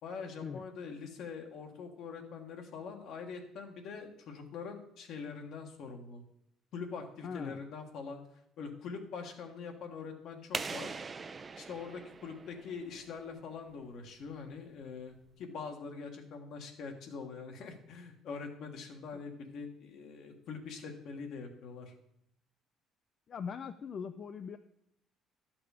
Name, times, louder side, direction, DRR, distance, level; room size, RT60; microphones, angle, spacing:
voice 1, 0.0-6.2 6.7-8.2 8.6-10.9 11.6-21.9, left 5 dB, 70° left, 4 dB, 1.5 m, -43 dB
voice 2, 7.2-7.6 19.1-19.2 23.3-24.6, left 6 dB, 50° left, 9 dB, 0.4 m, -41 dB
sound 1, 10.5-13.2, right 4 dB, 30° right, 0.4 m, -41 dB
11.0 x 6.0 x 4.9 m, 0.75 s
cardioid pair, 90°, 0 cm